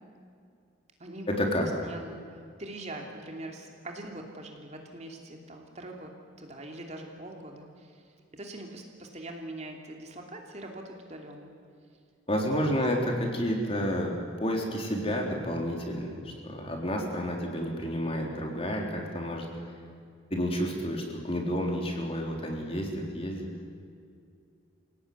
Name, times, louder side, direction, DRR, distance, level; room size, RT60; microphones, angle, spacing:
voice 1, 1.3-1.7 12.3-19.7 20.3-23.5, equal, 30° left, 1 dB, 3.8 m, -30 dB
voice 2, 1.8-6.1 6.4-11.5 12.5-12.8, right 1 dB, 35° right, 2 dB, 2.8 m, -43 dB
27.5 x 17.5 x 9.6 m, 2.3 s
head